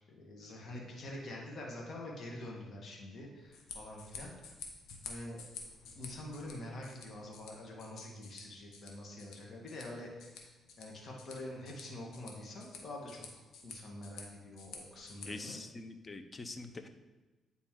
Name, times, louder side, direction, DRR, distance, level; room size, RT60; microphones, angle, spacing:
voice 1, 0.1-4.3 5.0-5.4 5.9-10.4 10.8-13.2 13.6-15.6, left 1 dB, 50° left, -2 dB, 1.5 m, -46 dB
sound 1, 3.4-15.3, left 4 dB, 80° left, 1.0 m, -51 dB
voice 2, 15.3-16.9, left 3 dB, 30° left, 8 dB, 0.6 m, -44 dB
8.9 x 4.0 x 3.7 m, 1.2 s
cardioid pair, 90°, 0 cm